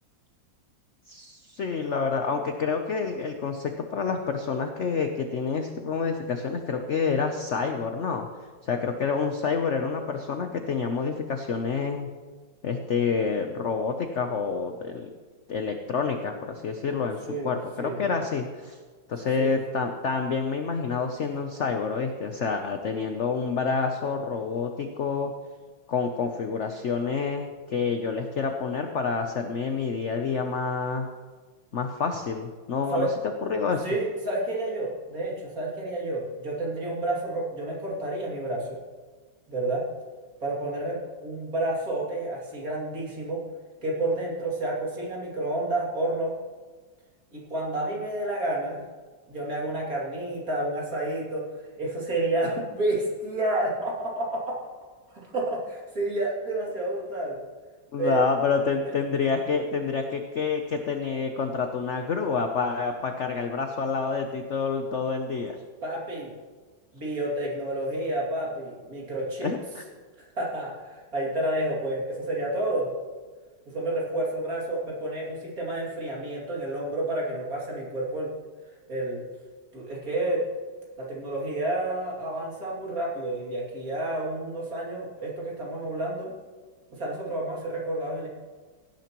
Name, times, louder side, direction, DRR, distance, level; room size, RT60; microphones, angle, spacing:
voice 1, 1.1-8.3 8.6-12.1 12.6-15.1 15.5-18.8 19.1-25.3 25.9-31.1 31.7-33.1 33.4-33.8 57.9-65.6 69.4-69.8, left 5 dB, 60° left, 5 dB, 0.7 m, -28 dB
voice 2, 17.3-18.0 19.4-19.5 32.9-33.1 33.8-38.8 39.5-39.8 40.4-43.4 43.8-46.3 47.3-48.8 49.3-54.6 55.1-57.4 58.0-58.2 58.9-59.0 65.8-66.3 66.9-69.5 70.4-72.9 73.7-78.3 78.9-79.2 79.7-80.4 81.0-86.3 86.9-88.3, right 1 dB, 45° right, -4 dB, 3.0 m, -30 dB
17.0 x 10.0 x 3.0 m, 1.4 s
omnidirectional pair, 2.1 m